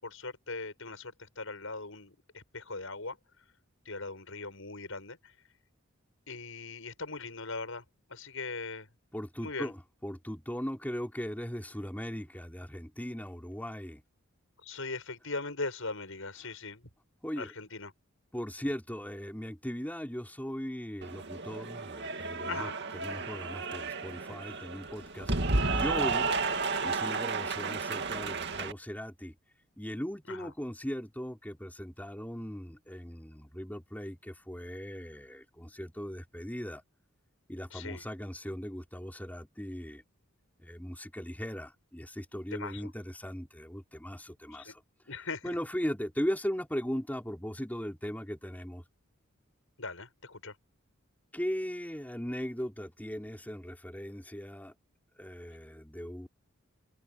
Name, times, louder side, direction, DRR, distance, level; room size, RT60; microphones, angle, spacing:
voice 1, 0.0-3.2 3.9-5.3 6.3-7.8 8.1-8.9 9.4-9.7 14.6-16.9 17.4-17.9 22.5-22.8 30.3-30.5 37.7-38.0 42.5-42.9 44.5-44.7 45.1-45.6 49.8-50.5, left 3 dB, 75° left, 7.1 m, -40 dB
voice 2, 9.1-14.0 16.4-16.5 17.2-17.5 18.3-25.3 25.7-26.3 26.8-29.3 29.8-36.8 37.5-40.0 40.6-44.8 45.4-48.8 51.3-54.7 55.2-56.3, equal, 10° left, 4.4 m, -38 dB
Cheering / Applause, 21.0-28.7, right 3 dB, 55° right, 2.3 m, -32 dB
head